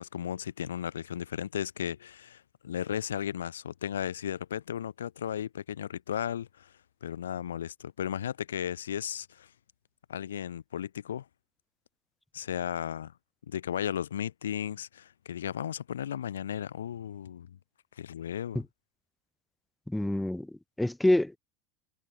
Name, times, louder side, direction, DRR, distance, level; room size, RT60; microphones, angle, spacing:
voice 1, 0.0-6.7 7.0-9.5 10.1-11.2 12.3-13.1 13.5-17.6 18.0-18.6, left 9 dB, 85° left, 1.4 m, -35 dB
voice 2, 19.9-21.4, left 1 dB, 5° left, 0.6 m, -27 dB
hypercardioid pair, 80°, 0 cm